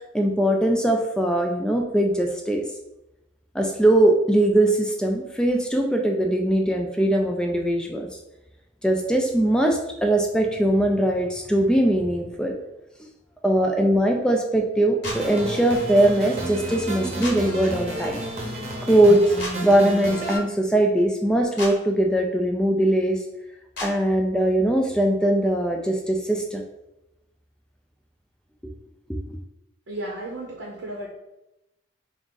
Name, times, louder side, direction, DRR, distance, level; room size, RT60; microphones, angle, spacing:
voice 1, 0.1-2.6 3.5-8.1 8.8-12.5 13.4-18.2 18.8-19.3 19.6-23.2 23.8-26.6 29.1-29.2, right 1 dB, 5° left, 2 dB, 0.3 m, -21 dB
sound 1, 15.0-15.2 17.2-17.4 19.4-19.5 21.6-21.7 23.7-23.9, left 1 dB, 60° left, 1.0 m, -31 dB
sound 2, 15.0-20.4, right 1 dB, 35° right, 0.8 m, -31 dB
voice 2, 29.9-31.1, right 1 dB, 80° right, -2 dB, 0.7 m, -34 dB
3.5 x 2.5 x 3.8 m, 0.92 s
head